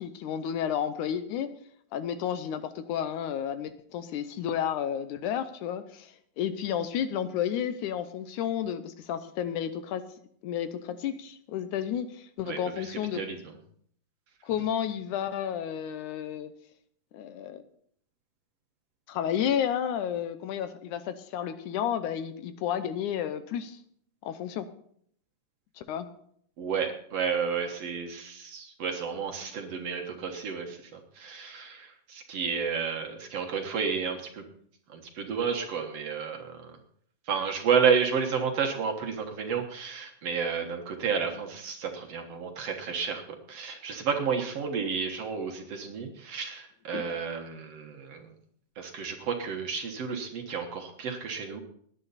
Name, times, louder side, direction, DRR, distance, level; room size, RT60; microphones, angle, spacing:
voice 1, 0.0-1.5 1.9-10.1 10.4-13.2 14.4-16.5 17.1-17.6 19.1-23.8 24.2-24.7 25.8-26.1 46.9-47.0, left 9 dB, 75° left, 11 dB, 2.2 m, -31 dB
voice 2, 12.4-13.6 26.6-34.4 34.9-36.7 37.3-43.2 43.5-48.3 48.8-51.6, right 6 dB, 55° right, 3 dB, 2.2 m, -31 dB
18.5 x 10.0 x 4.2 m, 0.64 s
omnidirectional pair, 3.7 m